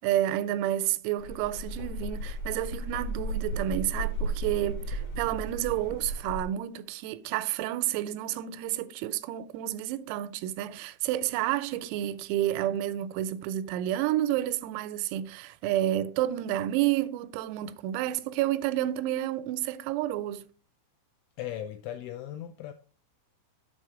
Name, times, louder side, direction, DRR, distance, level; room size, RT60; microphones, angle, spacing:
voice 1, 0.0-20.5, right 13 dB, 90° right, 3.2 m, -30 dB
sound 1, 1.2-6.4, right 1 dB, 70° left, 1.8 m, -34 dB
voice 2, 21.4-22.7, left 11 dB, 85° left, 2.7 m, -37 dB
7.8 x 5.6 x 3.7 m
omnidirectional pair, 5.9 m